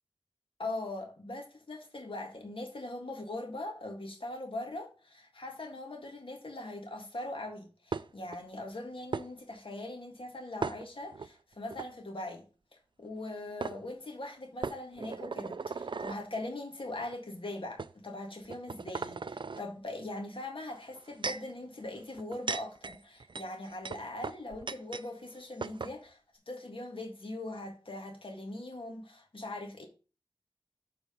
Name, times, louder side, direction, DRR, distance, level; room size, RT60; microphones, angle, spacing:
voice 1, 0.6-12.5 12.7-26.2 26.5-29.9, left 2 dB, 80° left, 1.8 m, -41 dB
sound 1, 7.9-8.4 9.1-9.3 10.6-11.3 11.7-11.9 13.2-13.3 13.6-13.8 14.6-16.2 17.0-17.1 17.8-17.9 18.4-19.6 20.7-21.5 22.2-25.1 25.3-25.4 25.6-26.0, right 4 dB, 65° right, 0.3 m, -37 dB
7.2 x 3.9 x 5.1 m
wide cardioid pair, 55°, 9 cm